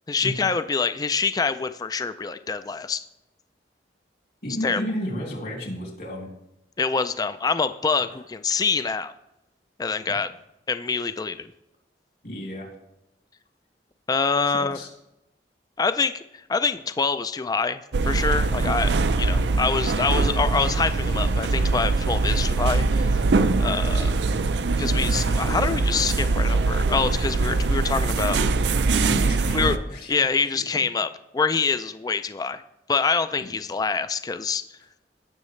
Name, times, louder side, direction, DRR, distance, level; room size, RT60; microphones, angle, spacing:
voice 1, 0.1-3.0 4.6-4.8 6.8-9.1 9.8-10.3 10.7-11.5 14.1-14.8 15.8-17.8 18.0-23.2 23.6-24.1 24.8-28.4 29.5-29.8 30.1-32.6 32.9-34.6, left 5 dB, 20° left, 12 dB, 0.3 m, -25 dB
voice 2, 4.4-6.3 8.1-8.2 10.1-10.2 12.2-12.7 14.5-14.9 25.1-25.2 28.9-30.8 33.4-33.5, equal, 60° left, 0 dB, 2.8 m, -33 dB
sound 1, 17.9-29.8, right 3 dB, 75° right, 0.5 m, -22 dB
17.0 x 6.5 x 3.2 m, 0.88 s
head